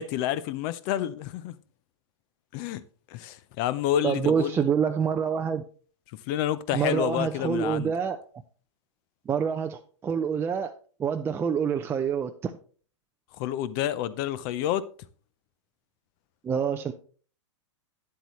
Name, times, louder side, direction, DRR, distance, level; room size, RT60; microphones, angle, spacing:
voice 1, 0.0-1.6 2.5-4.7 6.1-7.9 13.4-14.8, left 11 dB, 45° left, 0.7 m, -29 dB
voice 2, 4.0-5.6 6.7-8.2 9.3-10.7 11.0-12.5 16.4-16.9, right 7 dB, 15° right, 0.4 m, -26 dB
9.7 x 7.9 x 3.2 m
hypercardioid pair, 120°, 16 cm